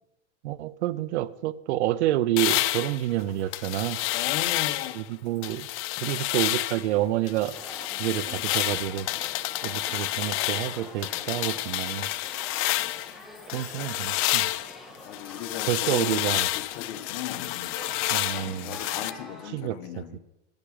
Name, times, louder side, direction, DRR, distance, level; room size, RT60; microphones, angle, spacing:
voice 1, 0.4-4.0 4.9-5.7 6.0-7.6 8.0-9.1 9.6-12.1 13.5-14.5 15.7-16.5 18.1-18.8 19.5-20.0, right 14 dB, 85° right, 20 dB, 0.7 m, -28 dB
sound 1, 2.4-5.0 5.4-6.9 7.3-13.1 13.5-19.1, left 18 dB, 40° left, 0.5 m, -29 dB
voice 2, 4.1-5.0 9.7-10.1 13.2-13.3 15.0-17.8 18.3-20.2, left 11 dB, 65° left, 9 dB, 1.3 m, -37 dB
sound 2, 7.5-19.5, left 1 dB, ahead, 1.6 m, -45 dB
10.5 x 6.1 x 8.7 m, 0.97 s
supercardioid pair, 125°, 33 cm